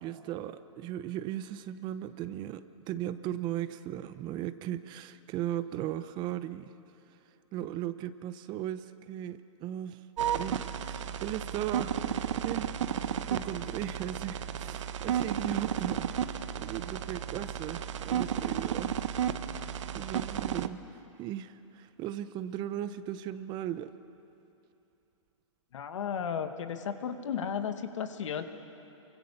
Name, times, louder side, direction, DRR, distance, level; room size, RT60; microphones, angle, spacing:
voice 1, 0.0-6.6 7.5-10.0 10.4-16.1 16.6-18.9 19.8-20.8 21.2-23.9, right 11 dB, 25° right, 13 dB, 0.8 m, -37 dB
sound 1, 10.2-20.7, right 9 dB, 65° right, 1.1 m, -33 dB
voice 2, 25.7-28.4, left 7 dB, 70° left, 8 dB, 2.0 m, -34 dB
28.5 x 24.0 x 7.3 m, 2.7 s
hypercardioid pair, 140°, 17 cm